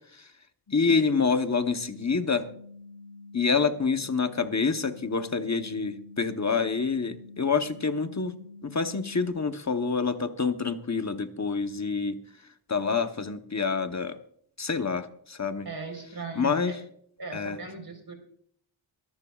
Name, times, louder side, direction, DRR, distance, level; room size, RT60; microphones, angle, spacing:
sound 1, 0.7-9.3, left 3 dB, 70° left, 7.0 m, -47 dB
voice 1, 0.7-2.5 3.3-8.3 8.6-12.2 12.7-14.2 14.6-15.7 16.4-16.8 17.3-17.6, left 5 dB, 35° left, 8 dB, 0.9 m, -27 dB
voice 2, 15.6-16.8 17.2-18.1, right 3 dB, 50° right, 4 dB, 4.0 m, -38 dB
23.5 x 12.0 x 2.4 m, 0.62 s
wide cardioid pair, 105°, 49 cm